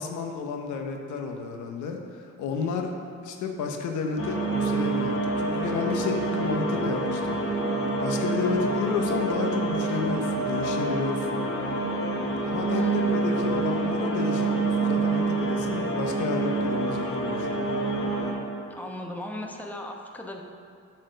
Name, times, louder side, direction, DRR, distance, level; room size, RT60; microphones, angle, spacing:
voice 1, 0.0-2.9 3.2-7.4 8.0-11.4 12.4-12.9 13.1-17.5, left 5 dB, 80° left, 3 dB, 0.9 m, -31 dB
sound 1, 4.2-18.3, right 2 dB, 50° left, 1.8 m, -27 dB
voice 2, 12.7-13.6 18.7-20.4, left 1 dB, 5° left, 2 dB, 0.8 m, -38 dB
7.9 x 4.3 x 6.5 m, 2.4 s
cardioid pair, 90°, 30 cm